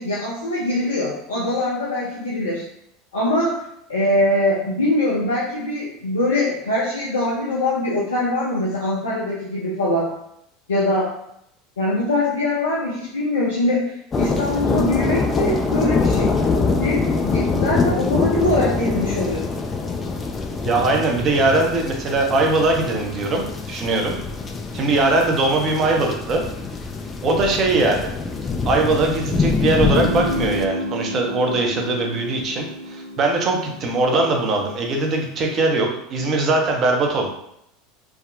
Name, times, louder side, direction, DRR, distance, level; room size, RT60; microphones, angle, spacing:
voice 1, 0.0-2.6 3.1-3.6 3.9-10.1 10.7-11.1 11.8-16.3 16.8-19.5, left 1 dB, 75° left, -6 dB, 0.5 m, -22 dB
sound 1, 14.1-30.7, left 4 dB, 25° left, 0.4 m, -24 dB
voice 2, 20.6-24.2 24.7-26.4 27.2-28.1 28.6-37.3, right 2 dB, 40° right, 2 dB, 0.6 m, -21 dB
Guitar, 29.9-35.5, equal, 80° right, 0.5 m, -31 dB
3.5 x 2.1 x 2.4 m, 0.76 s
figure-of-eight pair, 75°, 0 cm